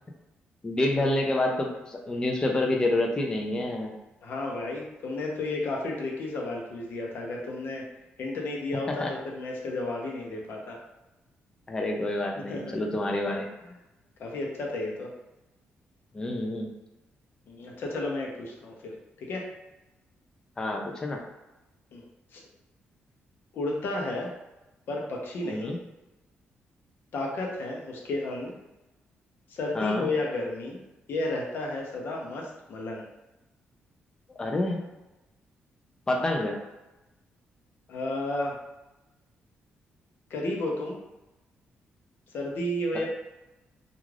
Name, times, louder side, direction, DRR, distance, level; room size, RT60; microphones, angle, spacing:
voice 1, 0.6-3.9 9.0-9.1 11.7-13.5 16.1-16.7 20.6-21.2 25.4-25.8 29.7-30.1 34.4-34.8 36.1-36.6, left 1 dB, 20° left, 1 dB, 0.4 m, -28 dB
voice 2, 4.2-7.8 8.2-10.8 12.5-12.7 14.2-15.1 17.5-19.4 21.9-22.0 22.3-22.4 23.5-24.3 24.9-25.8 27.1-28.5 29.5-30.8 31.1-33.1 37.9-38.5 40.3-41.0 42.3-43.1, left 2 dB, 60° left, -1 dB, 0.7 m, -32 dB
2.4 x 2.3 x 3.2 m, 1.0 s
cardioid pair, 155°, 4 cm